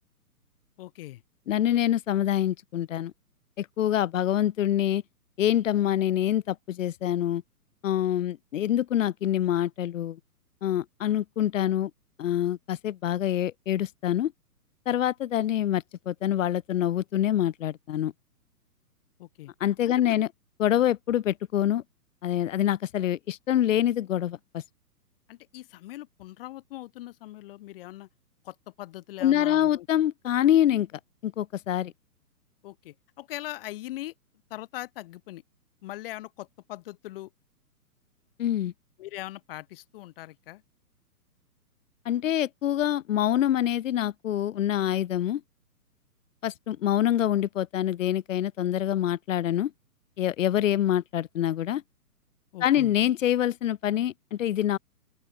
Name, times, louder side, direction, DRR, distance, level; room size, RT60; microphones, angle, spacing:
voice 1, 0.8-1.2 19.2-19.5 19.8-20.2 25.3-28.1 28.4-29.9 32.6-34.1 34.5-35.4 35.8-37.3 39.0-40.6 52.5-52.9, left 16 dB, 35° left, 1.4 m, -41 dB
voice 2, 1.5-3.1 3.6-5.0 5.4-7.4 7.8-10.2 10.6-11.9 12.2-14.3 14.9-18.1 19.6-20.3 20.6-21.8 22.2-24.6 29.2-30.9 31.2-31.9 38.4-38.7 42.0-45.4 46.4-49.7 50.2-51.8 52.6-54.8, left 11 dB, 55° left, 0.9 m, -25 dB
open air
hypercardioid pair, 135°, 47 cm